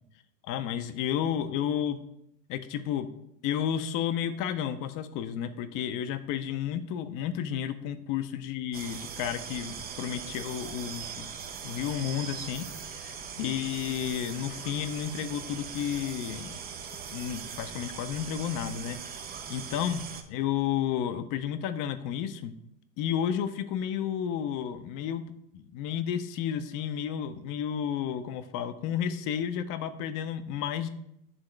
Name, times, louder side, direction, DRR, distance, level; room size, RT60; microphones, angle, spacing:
voice 1, 0.4-2.0 2.5-3.1 3.4-11.3 11.6-16.6 17.1-19.0 19.5-20.0 20.3-22.5 23.0-25.2 25.5-30.9, left 9 dB, 40° left, 11 dB, 0.6 m, -32 dB
sound 1, 8.7-20.2, right 7 dB, 20° right, 0.4 m, -40 dB
8.8 x 3.5 x 3.2 m, 0.79 s
supercardioid pair, 115°, 48 cm